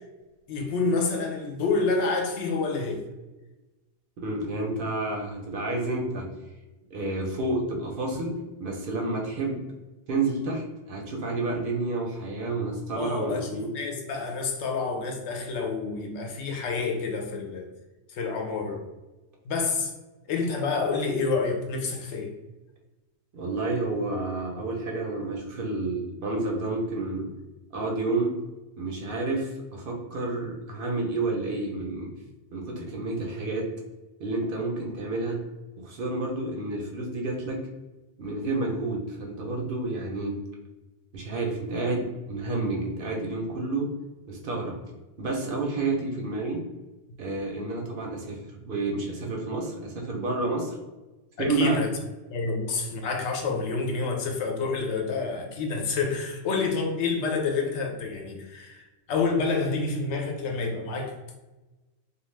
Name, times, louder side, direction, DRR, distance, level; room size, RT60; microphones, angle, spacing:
voice 1, 0.5-3.0 12.9-17.7 18.1-18.8 19.4-19.9 20.3-22.3 51.4-51.9 52.3-61.1, left 4 dB, 85° left, 2 dB, 0.9 m, -28 dB
voice 2, 4.2-6.3 6.9-9.6 10.1-13.7 23.3-27.3 27.7-28.3 28.8-32.1 32.5-33.7 34.2-35.4 35.8-37.6 38.2-40.4 41.1-43.9 44.3-44.8 45.2-46.6 47.2-50.7 51.4-51.8, right 2 dB, 60° right, 0 dB, 0.6 m, -30 dB
2.3 x 2.3 x 3.1 m, 1.1 s
omnidirectional pair, 1.2 m